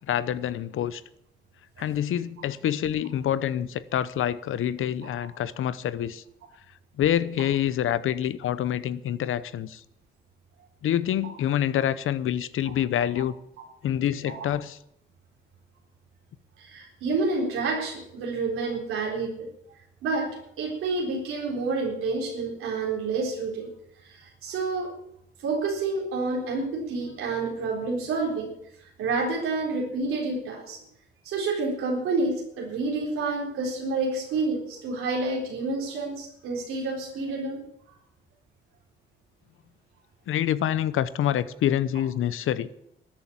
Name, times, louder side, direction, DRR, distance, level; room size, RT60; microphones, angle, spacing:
voice 1, 0.1-1.0 1.8-6.2 7.0-9.8 10.8-13.3 13.8-14.8 40.3-42.7, left 10 dB, 75° left, 0.8 m, -26 dB
voice 2, 16.6-19.5 20.0-23.7 24.1-25.0 25.4-28.5 29.0-30.8 31.2-37.6, right 3 dB, 85° right, 4.0 m, -29 dB
13.0 x 9.0 x 8.5 m
supercardioid pair, 60°, 21 cm